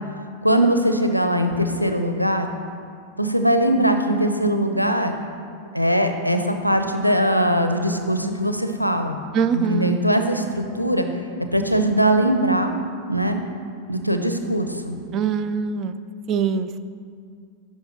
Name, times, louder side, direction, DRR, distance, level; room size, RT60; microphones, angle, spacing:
voice 1, 0.4-2.5 3.2-5.1 5.7-9.2 9.5-11.1 11.5-12.7 13.1-13.4 13.9-15.0, right 1 dB, 90° left, 6 dB, 0.5 m, -21 dB
voice 2, 9.3-10.0 15.1-16.0 16.3-16.8, right 7 dB, 35° right, 12 dB, 0.3 m, -23 dB
10.5 x 4.5 x 4.5 m, 2.3 s
figure-of-eight pair, 90°, 0 cm